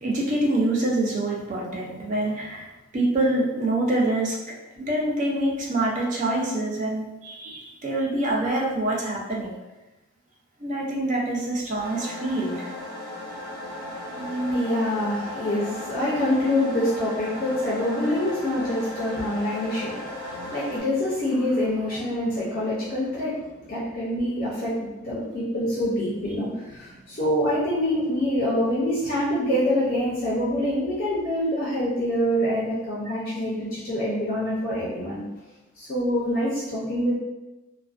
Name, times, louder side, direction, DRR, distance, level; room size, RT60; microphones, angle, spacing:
voice 1, 0.0-4.4 4.8-9.6 10.6-12.7 14.1-14.6, right 1 dB, 35° right, -3 dB, 0.4 m, -26 dB
sound 1, 11.8-20.8, left 1 dB, 20° left, 0.8 m, -36 dB
voice 2, 13.8-35.2 35.8-37.2, left 1 dB, 40° left, -8 dB, 0.5 m, -26 dB
2.5 x 2.1 x 2.4 m, 1.1 s
head